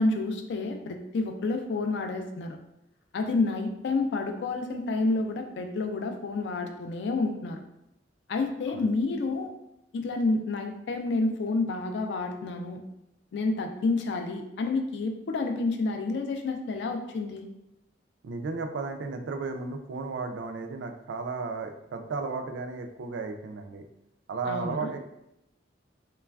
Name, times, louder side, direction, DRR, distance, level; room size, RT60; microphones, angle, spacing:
voice 1, 0.0-2.6 3.1-7.6 8.3-9.5 9.9-12.8 13.3-17.4 24.5-24.9, left 3 dB, 70° left, 5 dB, 0.3 m, -29 dB
voice 2, 18.2-23.8 24.3-25.0, right 4 dB, 85° right, 5 dB, 0.3 m, -34 dB
3.1 x 2.3 x 2.3 m, 0.83 s
head